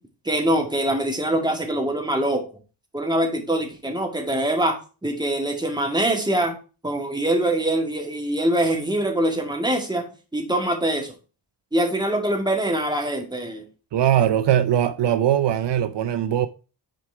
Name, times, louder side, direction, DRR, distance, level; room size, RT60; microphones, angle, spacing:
voice 1, 0.2-2.4 2.9-6.5 6.8-10.1 10.3-11.2 11.7-13.7, right 1 dB, 10° right, 2.1 m, -23 dB
voice 2, 13.9-16.5, right 10 dB, 70° right, 0.6 m, -20 dB
6.2 x 4.8 x 4.7 m
cardioid pair, 80°, 43 cm